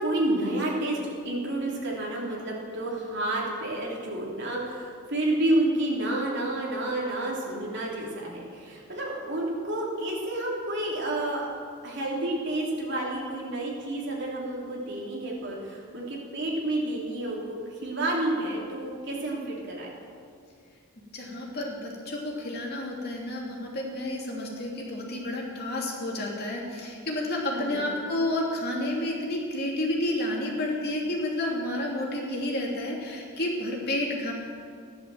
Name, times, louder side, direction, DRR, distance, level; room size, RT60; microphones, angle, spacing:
voice 1, 0.0-11.5 11.8-17.4 17.8-19.9 27.5-27.8, right 1 dB, 50° right, -3 dB, 3.3 m, -30 dB
voice 2, 21.1-34.3, left 1 dB, 45° left, -2 dB, 2.9 m, -30 dB
15.0 x 11.0 x 7.7 m, 2.2 s
head